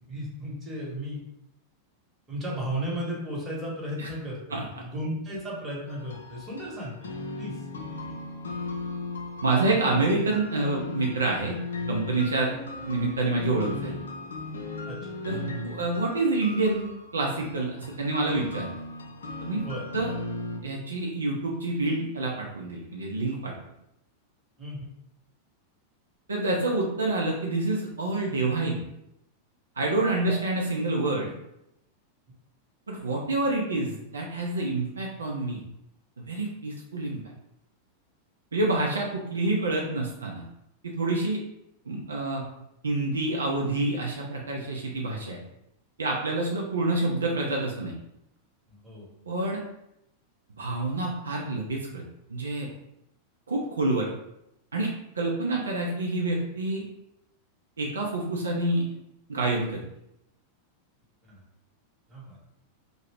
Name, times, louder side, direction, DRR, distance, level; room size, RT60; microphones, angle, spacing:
voice 1, 0.1-1.2 2.3-7.7 8.1-8.2 14.9-15.1 15.4-15.6 19.6-19.9 24.6-24.9 30.2-30.3 48.8-49.3 61.2-61.4 62.1-62.4, equal, 20° right, -4 dB, 1.1 m, -35 dB
sound 1, 5.9-20.6, left 2 dB, 70° left, 0.4 m, -37 dB
voice 2, 9.4-11.6 11.9-12.5 12.8-14.0 15.3-15.4 15.6-18.7 19.4-19.6 19.9-20.1 20.6-23.5 26.3-28.8 29.8-31.3 32.9-35.6 36.2-37.2 38.5-40.4 40.8-41.4 41.9-42.4 42.8-45.4 46.0-47.9 49.3-49.6 50.6-52.0 52.3-52.7 53.5-54.1 54.7-56.8 57.8-58.8 59.3-59.8, right 2 dB, 70° right, -2 dB, 0.4 m, -27 dB
2.7 x 2.0 x 3.4 m, 0.84 s
figure-of-eight pair, 90°, 0 cm